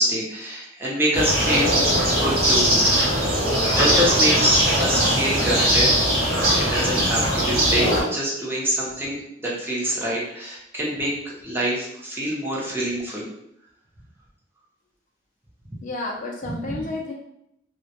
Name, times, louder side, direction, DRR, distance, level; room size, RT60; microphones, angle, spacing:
voice 1, 0.0-1.7 2.2-2.8 3.8-5.9 6.5-13.3 16.6-16.8, equal, 10° right, -5 dB, 0.6 m, -25 dB
Suburban birds late winter, 1.1-8.0, equal, 50° right, 0.9 m, -20 dB
voice 2, 15.8-17.1, left 2 dB, 45° left, 0 dB, 0.3 m, -31 dB
2.1 x 2.1 x 2.7 m, 0.78 s
head